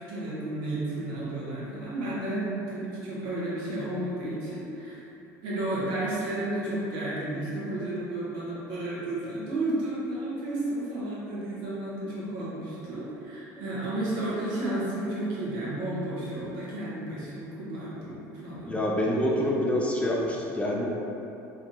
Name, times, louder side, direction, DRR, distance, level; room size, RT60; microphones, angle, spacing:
voice 1, 0.0-5.0 5.4-18.8, right 1 dB, 65° right, -8 dB, 1.2 m, -32 dB
voice 2, 18.7-20.9, left 1 dB, 15° left, -3 dB, 0.5 m, -26 dB
2.8 x 2.7 x 3.8 m, 2.8 s
supercardioid pair, 85°, 8 cm